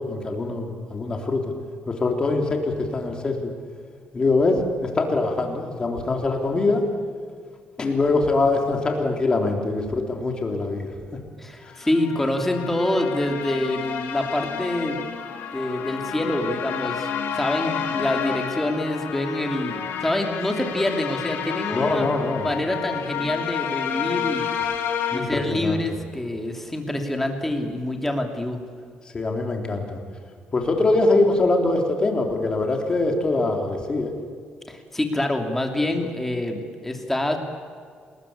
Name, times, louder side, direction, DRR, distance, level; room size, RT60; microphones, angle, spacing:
voice 1, 0.0-1.5 1.9-3.5 4.1-6.8 7.8-10.9 11.8-11.9 21.7-22.5 25.1-25.8 29.1-30.0 30.5-34.1, left 2 dB, 25° left, 2 dB, 3.6 m, -23 dB
voice 2, 11.4-15.0 15.5-17.1 17.3-22.1 22.4-24.5 25.1-28.6 34.7-37.4, left 1 dB, 5° left, 3 dB, 2.8 m, -26 dB
sound 1, 11.8-25.2, left 8 dB, 90° left, 3.6 m, -30 dB
28.5 x 20.5 x 8.6 m, 2.1 s
cardioid pair, 160°, 4 cm